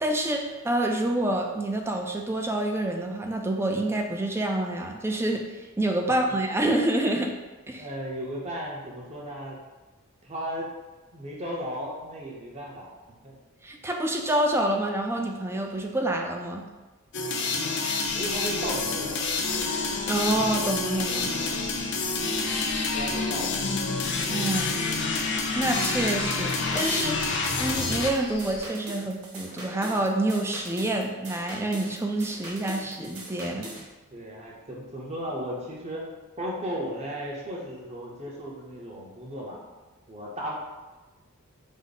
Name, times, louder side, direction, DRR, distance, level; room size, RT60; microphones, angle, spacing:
voice 1, 0.0-5.4 5.8-7.3 7.7-7.8 13.6-16.7 20.1-21.3 24.3-24.8 25.6-27.3 27.6-33.7, right 1 dB, 10° right, 2 dB, 0.4 m, -27 dB
voice 2, 7.8-9.6 10.2-10.7 11.1-12.9 13.2-13.4 18.1-19.2 22.3-22.6 22.9-23.6 34.1-36.0 36.4-39.6 40.1-40.6, equal, 30° right, -3 dB, 0.8 m, -35 dB
sound 1, 17.1-28.1, left 3 dB, 55° left, 0.6 m, -28 dB
sound 2, 18.0-28.7, left 3 dB, 85° left, 0.8 m, -41 dB
sound 3, 26.2-33.9, right 1 dB, 75° right, 0.9 m, -42 dB
5.2 x 2.1 x 3.9 m, 1.2 s
head